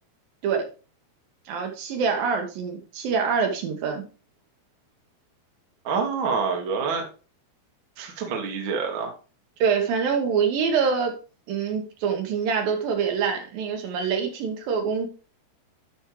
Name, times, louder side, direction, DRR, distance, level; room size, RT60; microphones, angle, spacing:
voice 1, 1.5-4.0 9.6-11.1 11.5-15.1, right 6 dB, 70° right, 3 dB, 2.9 m, -25 dB
voice 2, 5.8-7.0 8.0-9.1, right 5 dB, 45° right, 1 dB, 1.6 m, -27 dB
12.0 x 5.4 x 3.2 m, 0.34 s
omnidirectional pair, 4.5 m